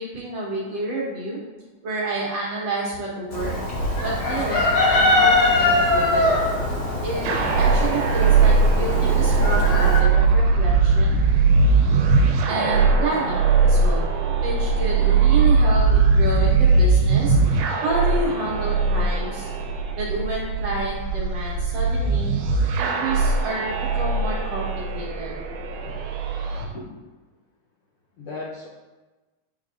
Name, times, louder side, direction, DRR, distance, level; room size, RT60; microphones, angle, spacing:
voice 1, 0.0-1.4 1.8-3.6 4.0-6.3 7.0-7.3 7.5-11.2 12.5-14.1 14.4-17.4 17.8-19.5 20.0-22.3 22.8-25.3, right 2 dB, 65° right, -6 dB, 2.1 m, -29 dB
Chicken rooster, 3.3-10.0, left 2 dB, 50° left, 1.4 m, -22 dB
sound 1, 7.2-26.7, right 4 dB, 90° right, 2.2 m, -20 dB
voice 2, 26.5-27.0 28.2-28.7, left 2 dB, 80° left, -5 dB, 1.2 m, -36 dB
8.8 x 4.6 x 2.5 m, 1.2 s
omnidirectional pair, 3.6 m